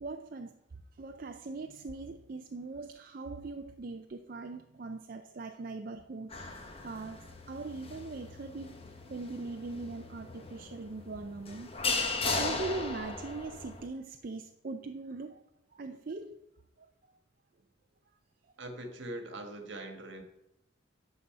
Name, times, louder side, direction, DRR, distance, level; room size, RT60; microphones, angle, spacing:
voice 1, 0.0-0.5 1.0-8.8 9.1-11.7 12.3-15.4 15.7-16.4 16.8-16.9, right 3 dB, 45° right, 6 dB, 0.4 m, -41 dB
sound 1, 6.3-13.9, left 3 dB, 30° left, 1.1 m, -37 dB
voice 2, 18.6-20.2, right 1 dB, 70° right, 6 dB, 1.5 m, -42 dB
11.5 x 4.1 x 7.6 m, 0.85 s
head